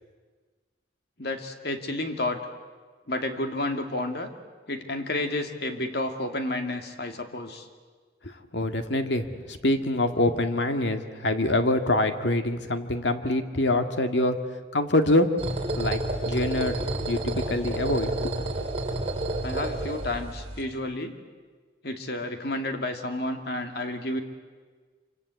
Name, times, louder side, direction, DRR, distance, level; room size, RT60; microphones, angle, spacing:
voice 1, 1.2-2.4 3.1-4.3 4.7-7.7 19.4-21.2 21.8-24.2, left 2 dB, 60° left, 5 dB, 2.5 m, -31 dB
voice 2, 8.2-14.4 14.7-15.3 15.8-16.8 17.1-18.3, left 1 dB, 75° left, 7 dB, 2.0 m, -25 dB
sound 1, 15.4-20.6, right 1 dB, 35° right, 3.9 m, -30 dB
27.0 x 25.5 x 8.4 m, 1.4 s
head